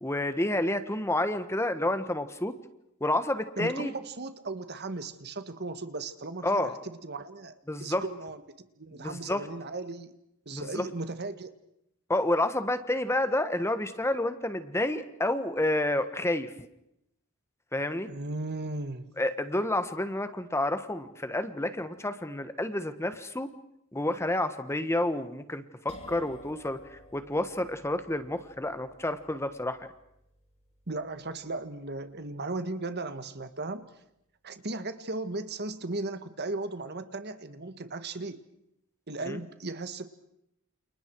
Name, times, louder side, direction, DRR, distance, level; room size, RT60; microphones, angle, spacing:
voice 1, 0.0-2.5 3.0-3.9 6.4-6.7 7.7-8.0 8.9-9.5 10.5-10.8 12.1-16.5 17.7-18.1 19.2-23.5 23.9-26.8 27.1-29.9 39.3-39.4, left 1 dB, 10° left, 10 dB, 1.3 m, -29 dB
voice 2, 3.6-10.1 10.4-11.5 18.1-19.1 30.9-33.8 34.4-38.4 39.1-40.1, right 2 dB, 50° right, 11 dB, 1.6 m, -36 dB
sound 1, 25.9-33.5, left 1 dB, 30° left, 6.5 m, -54 dB
29.0 x 29.0 x 4.7 m, 0.79 s
head